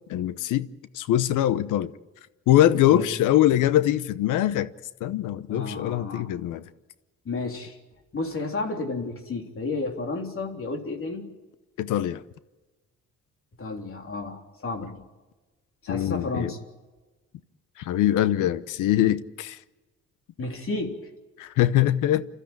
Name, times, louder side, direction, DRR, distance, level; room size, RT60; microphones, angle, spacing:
voice 1, 0.1-0.7 0.9-1.9 2.5-4.7 5.0-6.6 11.8-12.2 15.9-16.5 17.8-19.6 21.4-22.3, left 12 dB, 90° left, 0.9 m, -22 dB
voice 2, 5.5-6.3 7.3-7.8 8.1-11.3 13.6-15.0 15.8-16.6 20.4-21.0, left 3 dB, 45° left, 3.6 m, -32 dB
29.5 x 13.0 x 9.0 m
cardioid pair, 90°, 30 cm